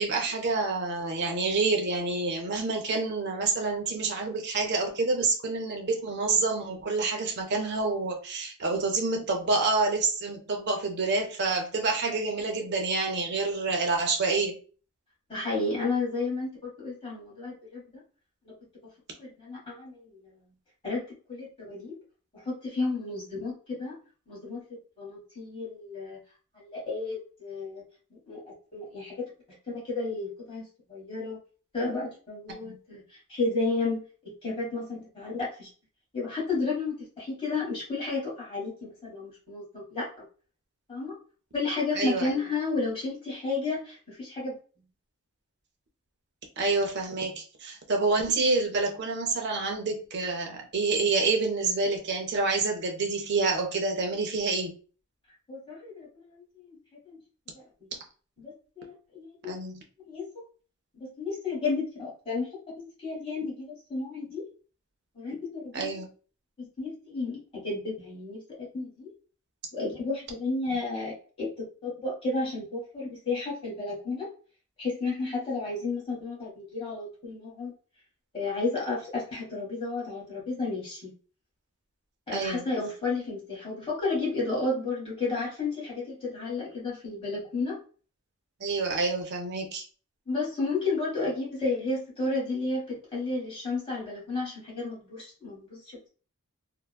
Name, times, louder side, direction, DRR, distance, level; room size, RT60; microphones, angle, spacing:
voice 1, 0.0-14.6 32.6-32.8 41.9-42.3 46.6-54.8 59.5-59.8 65.7-66.1 70.7-70.8 82.3-82.7 88.6-89.8, right 3 dB, 50° right, 2 dB, 0.6 m, -28 dB
voice 2, 15.3-16.5 16.8-17.8 18.4-18.5 19.2-20.1 20.8-21.0 21.3-21.9 22.3-23.5 23.8-24.0 24.3-24.6 25.0-26.2 26.5-27.8 28.1-28.4 28.7-29.2 29.8-31.4 31.7-33.0 33.3-34.0 34.4-35.7 36.1-38.7 39.0-40.1 40.9-41.1 41.5-44.5 55.5-56.8 57.0-57.2 57.5-57.6 58.4-59.7 60.0-60.3 61.0-62.5 62.8-64.4 65.1-65.9 66.6-67.4 67.6-68.4 68.7-69.1 69.7-71.5 71.8-74.3 74.8-77.7 78.3-81.1 82.3-87.8 90.3-95.8, left 3 dB, 25° left, -5 dB, 1.3 m, -32 dB
3.3 x 2.0 x 2.2 m, 0.39 s
head